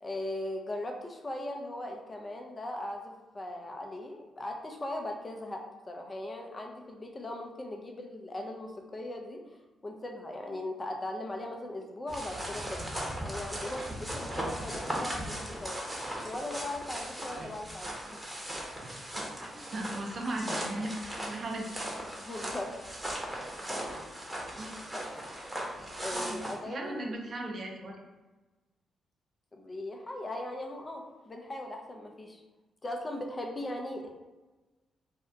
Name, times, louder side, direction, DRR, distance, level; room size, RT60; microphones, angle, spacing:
voice 1, 0.0-9.4 9.8-12.8 13.2-15.8 16.2-18.4 22.2-22.8 23.7-24.1 24.9-25.0 25.9-27.1 29.5-32.4 32.8-34.1, left 1 dB, 30° left, 2 dB, 0.6 m, -39 dB
sound 1, 12.1-26.5, right 1 dB, 15° right, 1.0 m, -38 dB
voice 2, 19.7-21.9 24.6-24.8 26.1-28.0, right 1 dB, 55° right, 0 dB, 0.6 m, -38 dB
2.7 x 2.2 x 3.4 m, 1.2 s
hypercardioid pair, 45°, 0 cm